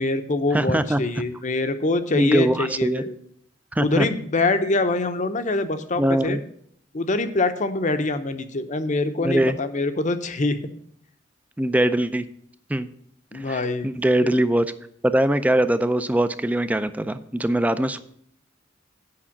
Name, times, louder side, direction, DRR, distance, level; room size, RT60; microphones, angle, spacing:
voice 1, 0.0-3.1 3.8-6.4 6.9-10.6 13.3-13.9 14.2-14.3, left 2 dB, 40° left, 10 dB, 0.7 m, -24 dB
voice 2, 0.5-1.0 2.2-3.0 3.7-4.1 6.0-6.4 9.2-9.6 11.6-12.3 12.7-12.9 13.3-14.7 15.0-18.0, right 1 dB, 10° right, 12 dB, 0.4 m, -22 dB
8.7 x 5.5 x 7.2 m, 0.66 s
head